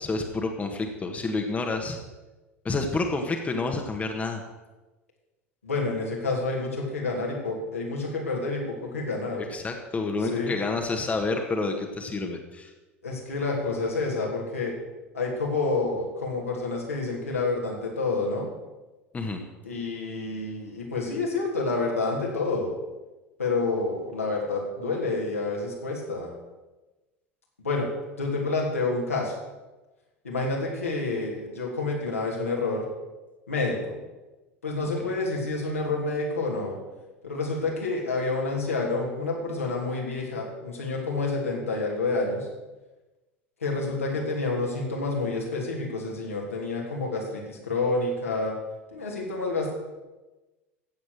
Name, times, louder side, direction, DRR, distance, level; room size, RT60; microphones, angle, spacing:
voice 1, 0.0-2.0 2.7-4.4 9.4-12.7 19.1-19.4, left 3 dB, 20° left, 4 dB, 1.7 m, -29 dB
voice 2, 5.6-9.5 10.3-10.5 13.0-14.7 15.1-18.5 19.6-22.7 23.4-26.3 27.6-27.9 28.2-29.3 30.2-32.8 33.5-34.0 34.6-36.8 37.2-42.5 43.6-48.5 48.9-49.7, left 3 dB, 80° left, -2 dB, 3.2 m, -28 dB
15.5 x 8.3 x 6.5 m, 1.1 s
figure-of-eight pair, 75°, 7 cm